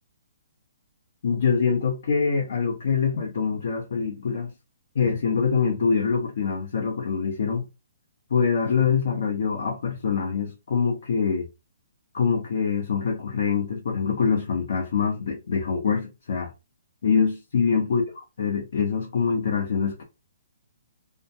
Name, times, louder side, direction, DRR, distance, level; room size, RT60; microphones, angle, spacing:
voice 1, 1.2-4.5 4.9-7.6 8.3-11.4 12.1-16.5 17.0-18.0 18.4-20.0, left 6 dB, 65° left, 0.7 m, -24 dB
2.4 x 2.2 x 2.7 m
hypercardioid pair, 150°, 0 cm